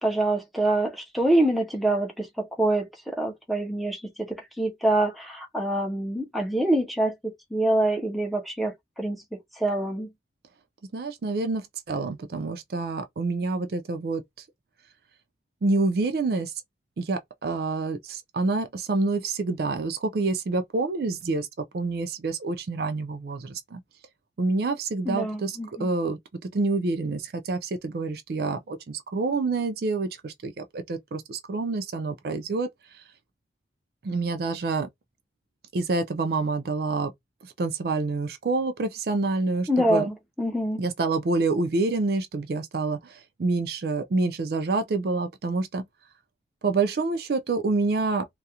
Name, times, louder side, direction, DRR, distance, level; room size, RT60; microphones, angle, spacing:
voice 1, 0.0-7.1 7.5-10.1 25.1-25.9 39.7-40.8, right 1 dB, ahead, 0.5 m, -26 dB
voice 2, 10.9-14.2 15.6-16.5 17.0-21.5 21.7-23.8 24.4-26.2 26.5-32.7 34.0-34.9 35.7-37.1 37.4-40.1 40.8-45.8 46.6-48.3, right 3 dB, 60° right, 0.4 m, -27 dB
2.4 x 2.0 x 2.7 m
head